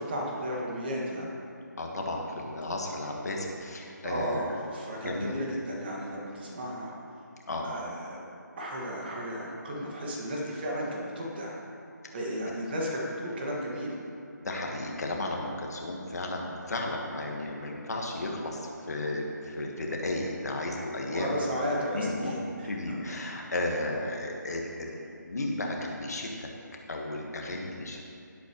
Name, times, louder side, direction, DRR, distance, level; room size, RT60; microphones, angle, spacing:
voice 1, 0.0-1.3 4.0-6.9 7.6-8.2 8.6-11.6 12.1-14.0 21.1-22.7, equal, 30° right, -3 dB, 2.1 m, -34 dB
voice 2, 1.8-4.6 5.0-5.4 7.5-7.7 14.4-22.3 22.6-26.5 26.9-28.0, left 2 dB, 55° left, 0 dB, 1.7 m, -34 dB
17.0 x 8.2 x 3.2 m, 2.7 s
figure-of-eight pair, 160°, 10 cm